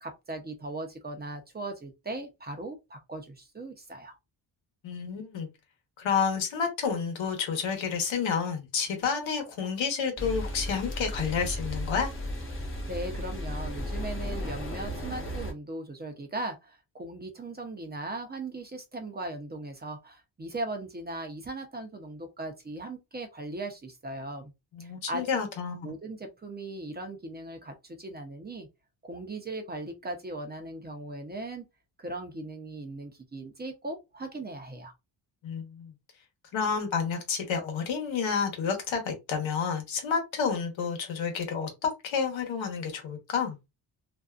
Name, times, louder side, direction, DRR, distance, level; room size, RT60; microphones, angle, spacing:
voice 1, 0.0-4.2 12.9-24.5 24.8-25.2 25.8-28.7 29.0-31.6 32.0-34.9, right 2 dB, 20° right, 0.6 m, -38 dB
voice 2, 4.8-5.5 6.0-12.1 24.7-25.9 35.4-35.9 36.5-43.5, left 6 dB, 85° left, 1.0 m, -30 dB
sound 1, 10.2-15.5, left 1 dB, 30° left, 0.8 m, -34 dB
2.5 x 2.3 x 2.3 m
cardioid pair, 110°, 45 cm